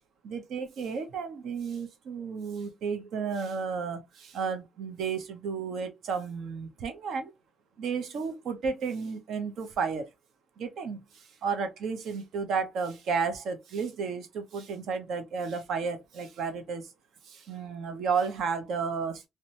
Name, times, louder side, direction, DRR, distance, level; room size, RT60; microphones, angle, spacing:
voice 1, 0.2-7.3 7.8-10.1 10.6-16.9 17.2-19.3, right 5 dB, 75° right, 0.7 m, -32 dB
2.8 x 2.2 x 2.6 m
cardioid pair, 90°, 0 cm